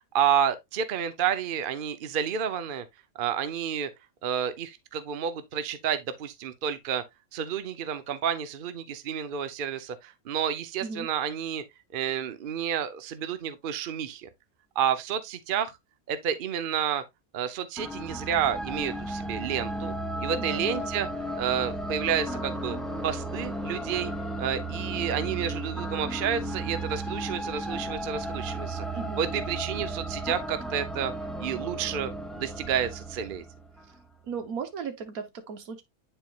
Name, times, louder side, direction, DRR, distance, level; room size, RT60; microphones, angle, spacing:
voice 1, 0.1-2.9 3.2-3.9 4.2-7.0 7.3-11.6 11.9-14.3 14.8-15.8 16.1-17.0 17.3-19.9 20.2-21.1 21.3-22.8 23.0-24.1 24.4-28.8 29.2-31.1 31.4-33.4, right 8 dB, 45° right, 0.8 m, -30 dB
sound 1, 17.8-34.0, right 1 dB, ahead, 0.3 m, -34 dB
voice 2, 20.4-20.9 28.9-29.2 34.2-35.8, right 6 dB, 80° right, 1.5 m, -36 dB
9.2 x 4.5 x 2.4 m
omnidirectional pair, 1.5 m